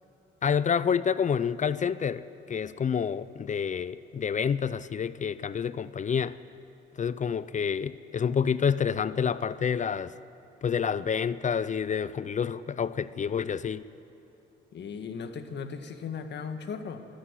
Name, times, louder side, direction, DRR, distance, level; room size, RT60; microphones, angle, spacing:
voice 1, 0.4-6.4 7.0-10.1 10.6-13.8, left 7 dB, 40° left, 16 dB, 0.6 m, -28 dB
voice 2, 14.7-17.1, left 6 dB, 60° left, 7 dB, 1.7 m, -37 dB
27.0 x 11.5 x 9.7 m, 2.8 s
cardioid pair, 90°, 20 cm